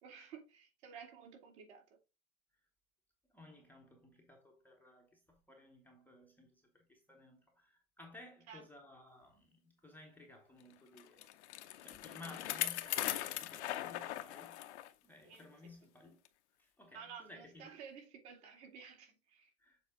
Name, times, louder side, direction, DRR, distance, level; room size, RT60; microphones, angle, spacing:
voice 1, 0.0-1.8 8.5-8.6 15.2-15.4 16.9-19.5, right 6 dB, 50° right, 2.4 m, -53 dB
voice 2, 3.3-11.4 11.8-14.6 15.0-16.2 16.6-17.8 19.6-19.8, left 2 dB, 5° left, 0.9 m, -57 dB
Bicycle, 11.0-14.9 15.3-15.4 16.2-16.3, left 13 dB, 50° left, 0.8 m, -40 dB
7.1 x 4.0 x 3.6 m
hypercardioid pair, 120°, 42 cm